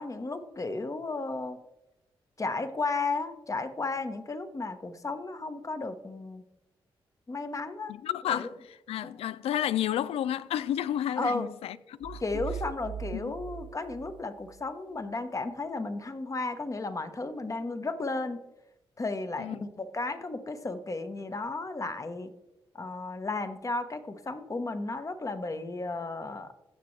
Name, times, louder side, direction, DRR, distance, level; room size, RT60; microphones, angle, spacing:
voice 1, 0.0-1.6 2.4-6.4 7.3-7.9 8.3-8.5 9.0-9.1 11.2-11.5 12.2-18.4 19.0-22.3 22.7-26.5, left 3 dB, 35° left, 1.0 m, -34 dB
voice 2, 7.9-12.2 13.1-13.3 19.4-19.6, left 11 dB, 85° left, 0.4 m, -31 dB
sound 1, 12.0-14.7, right 9 dB, 55° right, 0.3 m, -40 dB
15.5 x 6.0 x 3.2 m
cardioid pair, 55°, 10 cm